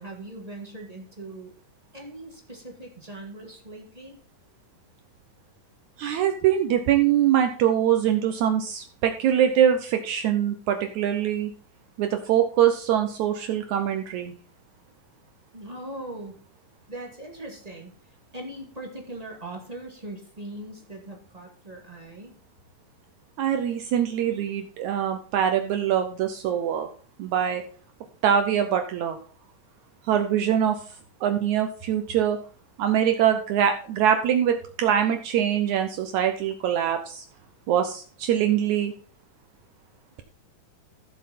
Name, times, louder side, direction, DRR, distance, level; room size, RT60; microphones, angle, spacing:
voice 1, 0.0-1.5 1.9-4.2 15.5-16.3 16.9-17.9 18.3-22.4, right 1 dB, 15° right, 0 dB, 1.4 m, -40 dB
voice 2, 6.0-11.5 12.0-14.3 23.4-26.9 27.2-27.6 28.2-29.2 30.0-30.8 31.2-32.4 32.8-37.2 37.7-38.9, right 9 dB, 80° right, 6 dB, 1.7 m, -23 dB
14.5 x 7.3 x 4.2 m, 0.43 s
omnidirectional pair, 4.3 m